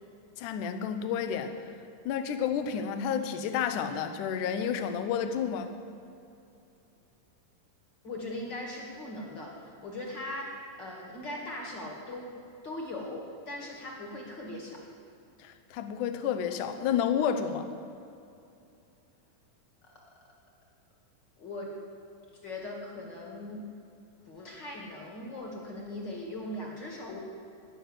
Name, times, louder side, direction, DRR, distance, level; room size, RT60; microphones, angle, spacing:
voice 1, 0.4-1.5 2.1-5.7 15.4-17.7, left 8 dB, 70° left, 8 dB, 2.2 m, -30 dB
voice 2, 8.0-12.3 12.6-14.8 19.8-19.9 21.4-21.7 22.4-23.6 24.2-27.2, left 1 dB, 35° left, -1 dB, 2.1 m, -39 dB
19.5 x 6.5 x 8.0 m, 2.7 s
omnidirectional pair, 4.1 m